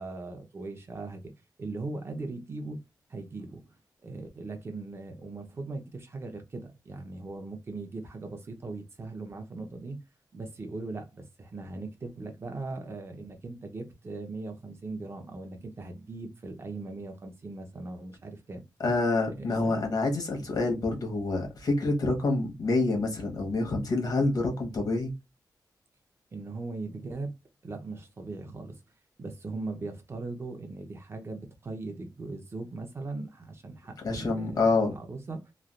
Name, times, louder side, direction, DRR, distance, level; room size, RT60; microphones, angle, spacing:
voice 1, 0.0-1.3 1.6-2.8 3.1-3.7 4.0-10.0 10.3-18.6 19.4-19.8 26.3-27.3 27.6-28.8 29.2-35.5, right 3 dB, 35° right, 0.7 m, -39 dB
voice 2, 18.8-25.1 34.0-34.9, left 2 dB, 60° left, 1.2 m, -27 dB
3.2 x 2.4 x 2.5 m
wide cardioid pair, 170°, 7 cm